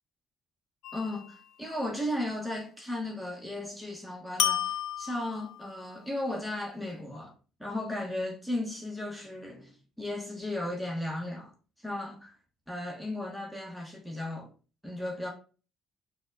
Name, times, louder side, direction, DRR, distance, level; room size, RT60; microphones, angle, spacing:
sound 1, 0.8-1.5 4.4-5.8, left 11 dB, 70° left, 0.3 m, -32 dB
voice 1, 0.9-7.3 7.6-11.5 11.8-12.4 12.7-14.5 14.8-15.3, left 1 dB, ahead, 0.8 m, -35 dB
4.1 x 2.1 x 2.4 m
supercardioid pair, 70°, 0 cm